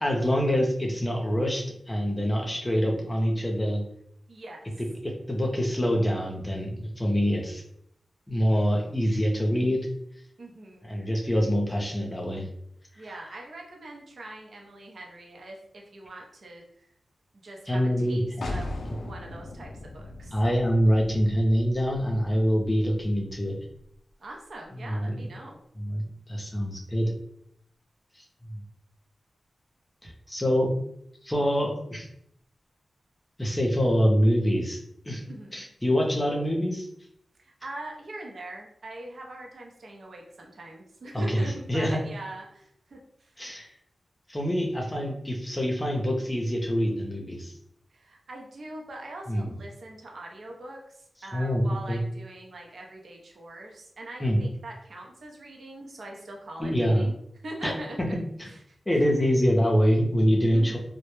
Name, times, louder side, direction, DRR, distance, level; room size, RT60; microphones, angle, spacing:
voice 1, 0.0-3.8 5.3-7.6 8.3-9.8 10.9-12.4 17.7-18.5 20.3-23.5 24.8-25.2 25.8-26.0 26.3-27.1 30.0-30.7 31.2-32.1 33.4-34.8 35.0-35.2 35.5-36.9 41.1-42.0 43.4-43.7 44.3-47.5 49.3-49.5 51.3-52.0 54.2-54.4 56.6-57.1 57.6-57.7 58.4-58.5 58.9-60.8, equal, 15° left, 0 dB, 0.6 m, -25 dB
voice 2, 4.3-4.7 10.4-11.0 13.0-16.9 17.4-18.7 19.0-20.4 24.2-25.6 30.0-30.1 35.3-35.7 37.4-43.3 47.9-57.1 57.4-58.2 58.4-58.8 60.5-60.8, right 1 dB, 70° right, 0 dB, 0.6 m, -42 dB
sound 1, 18.4-24.0, left 2 dB, 70° left, 0.3 m, -39 dB
2.1 x 2.1 x 3.0 m, 0.71 s
cardioid pair, 70°, 0 cm